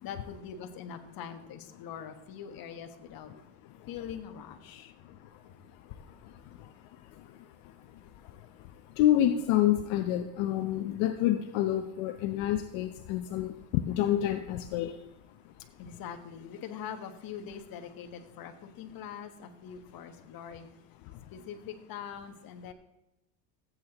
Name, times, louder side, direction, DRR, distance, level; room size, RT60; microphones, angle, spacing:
voice 1, 0.0-3.3 3.9-4.9 15.8-20.7 21.3-22.7, left 8 dB, 45° left, 1.3 m, -43 dB
voice 2, 3.3-3.9 5.0-5.4 5.7-15.0 15.4-15.5 15.9-16.0 20.5-20.6 21.0-21.4, left 12 dB, 70° left, 0.9 m, -30 dB
15.0 x 8.5 x 3.0 m
supercardioid pair, 125°, 47 cm